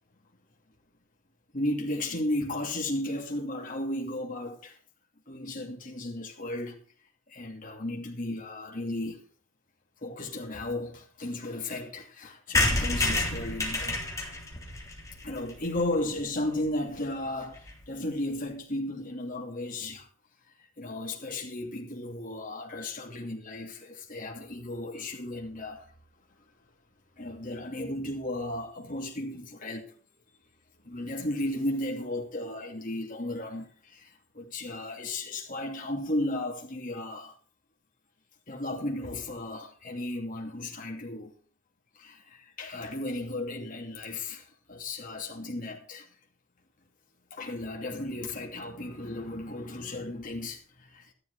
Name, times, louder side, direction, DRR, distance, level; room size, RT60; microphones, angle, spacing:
voice 1, 1.5-4.8 5.3-6.8 7.3-9.2 10.0-14.0 15.2-20.1 20.6-25.9 27.2-29.9 30.8-37.3 38.5-41.3 41.9-46.1 47.3-51.1, left 1 dB, 40° left, 2.8 m, -34 dB
sound 1, 12.5-16.2 16.7-16.8 16.9-17.0 17.3-17.4 17.6-17.8, left 2 dB, 15° left, 3.4 m, -29 dB
13.5 x 11.5 x 4.9 m
head